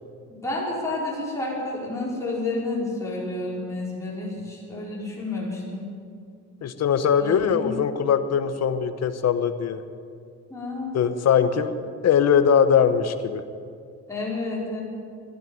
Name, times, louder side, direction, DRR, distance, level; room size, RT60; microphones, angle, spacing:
voice 1, 0.3-5.8 7.2-7.7 10.5-11.1 14.1-14.8, left 2 dB, 10° left, -6 dB, 4.9 m, -30 dB
voice 2, 6.6-9.8 10.9-11.7 12.0-13.4, left 7 dB, 60° left, 10 dB, 1.0 m, -21 dB
13.0 x 12.0 x 9.1 m, 2.3 s
cardioid pair, 90°, 30 cm